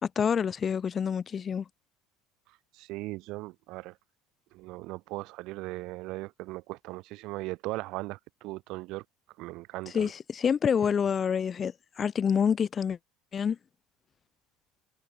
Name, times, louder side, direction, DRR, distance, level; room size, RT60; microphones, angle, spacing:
voice 1, 0.0-1.6 9.9-13.0 13.3-13.6, left 7 dB, 35° left, 0.7 m, -27 dB
voice 2, 2.7-4.0 4.5-9.0 9.4-10.1, right 20 dB, 55° right, 3.4 m, -38 dB
figure-of-eight pair, 65°, 0 cm